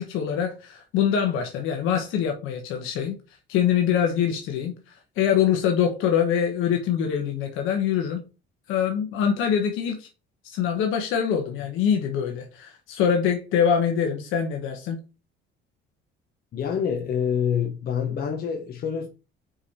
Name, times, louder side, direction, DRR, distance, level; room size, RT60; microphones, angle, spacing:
voice 1, 0.0-3.2 3.5-4.7 5.2-8.2 8.7-10.1 10.4-15.0, left 8 dB, 85° left, 1.2 m, -24 dB
voice 2, 16.5-19.1, left 7 dB, 50° left, 1.1 m, -26 dB
5.2 x 4.7 x 4.3 m
cardioid pair, 125°, 20 cm